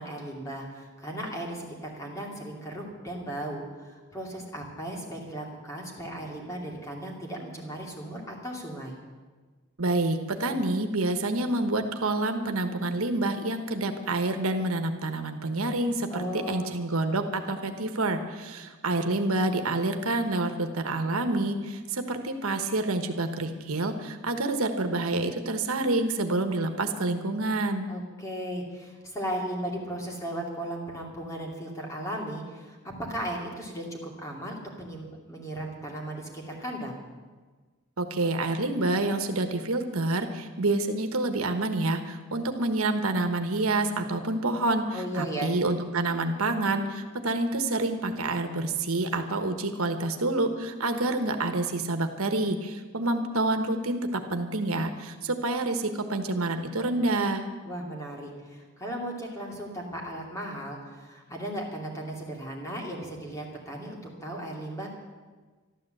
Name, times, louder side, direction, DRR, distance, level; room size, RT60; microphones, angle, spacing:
voice 1, 0.0-9.0 16.1-16.7 27.9-32.8 33.1-37.0 44.9-45.5 57.6-64.9, right 1 dB, 15° left, -1 dB, 2.6 m, -36 dB
voice 2, 9.8-27.9 38.0-57.5, right 2 dB, 85° right, 6 dB, 1.3 m, -28 dB
13.0 x 12.5 x 7.8 m, 1.4 s
head